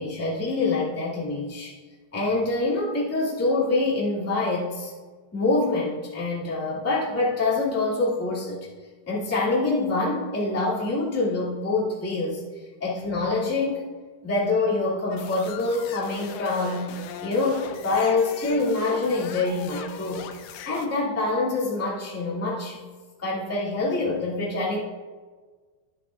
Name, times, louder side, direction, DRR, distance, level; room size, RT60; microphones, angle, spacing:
voice 1, 0.0-1.7 2.1-4.9 5.3-8.6 9.1-12.4 12.8-13.8 14.2-16.9 17.2-20.2 20.6-22.8 23.2-24.8, left 3 dB, 10° left, -7 dB, 0.9 m, -25 dB
sound 1, 15.1-20.9, left 7 dB, 80° left, 2.3 m, -40 dB
11.5 x 10.0 x 2.5 m, 1.4 s
omnidirectional pair, 4.7 m